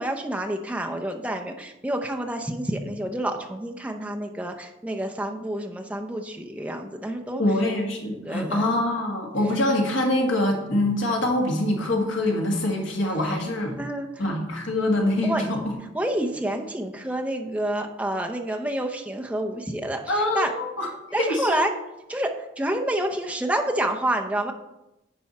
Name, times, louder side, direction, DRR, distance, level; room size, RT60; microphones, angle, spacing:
voice 1, 0.0-7.4 8.1-8.7 13.8-14.2 15.2-15.4 15.9-20.5 21.1-21.7 22.1-24.5, right 1 dB, 5° right, 3 dB, 0.6 m, -28 dB
voice 2, 7.4-13.8 14.2-15.7 20.1-20.9 21.2-21.6, left 1 dB, 65° left, 0 dB, 1.7 m, -24 dB
10.5 x 4.7 x 4.2 m, 0.93 s
head